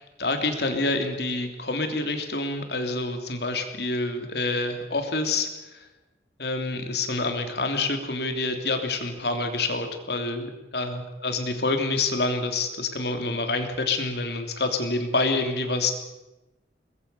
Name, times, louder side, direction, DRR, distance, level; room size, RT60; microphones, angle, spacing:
voice 1, 0.0-5.8 6.4-15.9, left 3 dB, 65° left, 6 dB, 3.2 m, -27 dB
23.0 x 20.5 x 7.0 m, 1.0 s
head